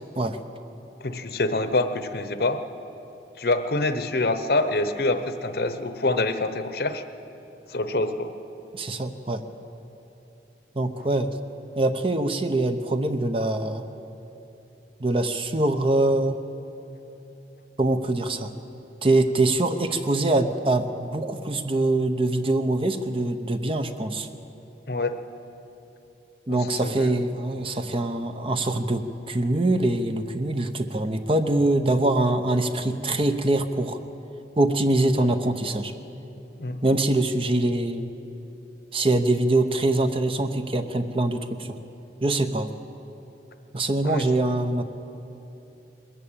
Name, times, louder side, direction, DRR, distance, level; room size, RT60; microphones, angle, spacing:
voice 1, 1.0-2.6 3.4-7.0 7.7-8.3 24.9-25.2 26.5-27.1 36.6-36.8 44.0-44.3, left 2 dB, 60° left, 10 dB, 0.9 m, -26 dB
voice 2, 8.7-9.4 10.7-11.3 11.8-13.8 15.0-16.4 17.8-18.5 19.0-24.3 26.5-34.0 34.6-35.9 36.8-38.1 38.9-41.8 42.2-42.7 43.7-44.8, right 2 dB, 30° right, 8 dB, 0.8 m, -24 dB
21.5 x 14.0 x 8.8 m, 3.0 s
head